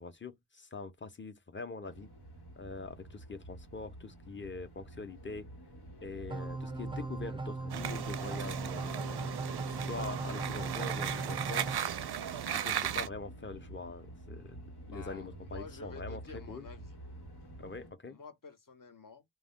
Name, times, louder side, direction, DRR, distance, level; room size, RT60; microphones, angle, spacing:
voice 1, 0.0-2.1 2.6-5.5 6.0-9.5 9.9-11.8 12.5-14.6 14.9-16.7 17.6-18.2, left 4 dB, 30° left, 0.7 m, -44 dB
sound 1, 1.8-17.9, right 1 dB, 90° left, 1.2 m, -49 dB
sound 2, 6.3-11.8, right 3 dB, 15° right, 0.3 m, -38 dB
sound 3, 7.7-13.1, right 9 dB, 85° right, 0.5 m, -36 dB
voice 2, 14.9-17.0 18.1-19.2, left 4 dB, 55° left, 0.9 m, -50 dB
2.2 x 2.1 x 3.6 m
wide cardioid pair, 60°, 39 cm